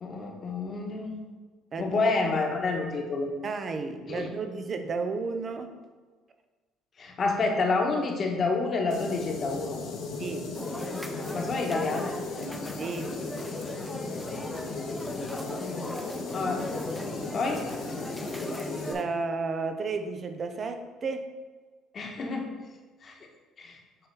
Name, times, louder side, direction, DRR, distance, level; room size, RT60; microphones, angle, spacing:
voice 1, 0.0-1.2 1.8-3.3 4.1-4.3 7.0-9.8 11.3-12.2 15.6-15.9 16.3-16.6 17.3-17.7 21.9-22.6 23.0-23.2 23.6-23.8, left 3 dB, 40° left, 2 dB, 1.3 m, -29 dB
voice 2, 1.7-2.1 3.4-5.8 10.2-10.5 12.8-13.1 18.8-21.3, right 4 dB, 40° right, 7 dB, 0.7 m, -32 dB
sound 1, 8.9-18.9, left 4 dB, 70° left, 1.2 m, -37 dB
sound 2, 10.5-19.0, left 1 dB, 5° left, 0.6 m, -37 dB
7.7 x 3.5 x 4.6 m, 1.4 s
supercardioid pair, 95°, 0 cm